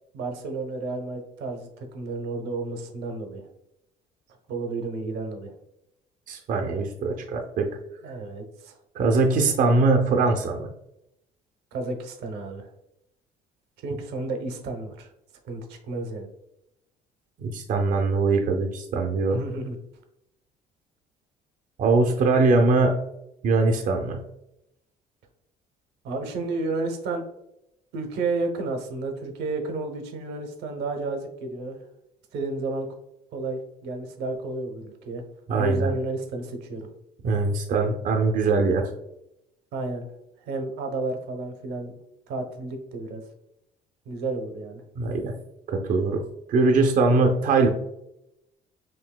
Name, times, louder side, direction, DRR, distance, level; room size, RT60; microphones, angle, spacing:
voice 1, 0.1-3.5 4.5-5.5 8.0-8.8 11.7-12.7 13.8-15.1 15.4-16.3 19.3-19.8 26.0-27.2 27.9-31.8 32.3-32.9 33.3-35.2 35.5-36.9 39.7-40.1 40.4-42.0 42.3-43.2 44.1-44.8 47.1-47.2, right 3 dB, 85° right, 4 dB, 0.8 m, -31 dB
voice 2, 6.3-7.7 9.0-10.7 17.4-19.4 21.8-23.0 23.4-24.2 35.5-35.9 37.2-38.9 45.0-45.3 45.7-46.2 46.5-47.7, right 3 dB, 55° right, 2 dB, 0.6 m, -22 dB
5.9 x 2.6 x 2.2 m, 0.83 s
cardioid pair, 110°, 17 cm